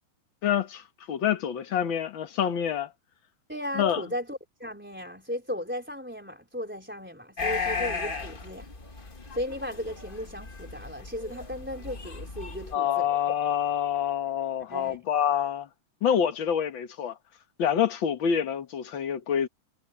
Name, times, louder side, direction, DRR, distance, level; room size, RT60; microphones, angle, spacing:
voice 1, 0.4-2.9 3.7-4.0 12.7-15.7 16.0-17.2 17.6-19.5, left 8 dB, 55° left, 1.4 m, -27 dB
voice 2, 3.5-8.7 9.3-13.1 14.7-15.0, left 1 dB, 5° right, 3.4 m, -36 dB
sound 1, 7.4-12.7, left 4 dB, 40° left, 0.7 m, -35 dB
omnidirectional pair, 3.8 m